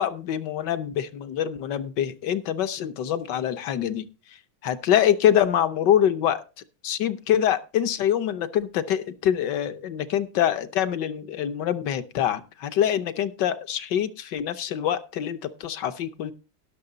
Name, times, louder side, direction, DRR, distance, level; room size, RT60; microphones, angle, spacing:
voice 1, 0.0-4.1 4.6-6.4 6.8-16.3, left 10 dB, 65° left, 11 dB, 1.3 m, -25 dB
17.5 x 6.5 x 3.9 m, 0.31 s
omnidirectional pair, 2.2 m